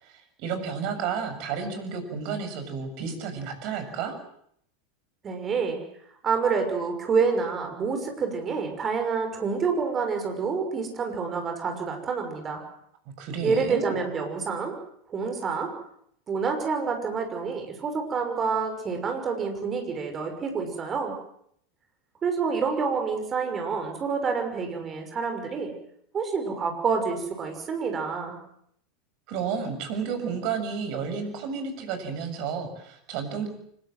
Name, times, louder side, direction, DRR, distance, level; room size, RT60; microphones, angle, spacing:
voice 1, 0.0-4.2 13.2-14.0 29.3-33.5, right 6 dB, 50° right, 8 dB, 7.0 m, -31 dB
voice 2, 5.2-5.8 6.2-12.6 13.4-14.7 15.1-15.7 16.3-21.1 22.2-25.7 26.1-28.4, right 5 dB, 30° right, 5 dB, 6.0 m, -28 dB
25.5 x 23.0 x 7.8 m, 0.70 s
figure-of-eight pair, 85°, 0 cm